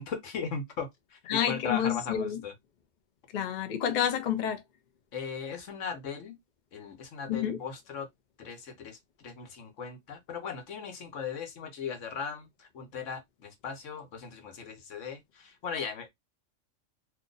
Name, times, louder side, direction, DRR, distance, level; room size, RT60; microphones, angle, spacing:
voice 1, 0.0-2.5 5.1-6.4 6.7-8.1 8.4-16.1, left 6 dB, 70° left, 1.2 m, -38 dB
voice 2, 1.3-2.4 3.3-4.6 7.3-7.6, left 9 dB, 55° left, 0.5 m, -29 dB
2.7 x 2.3 x 3.8 m
omnidirectional pair, 1.3 m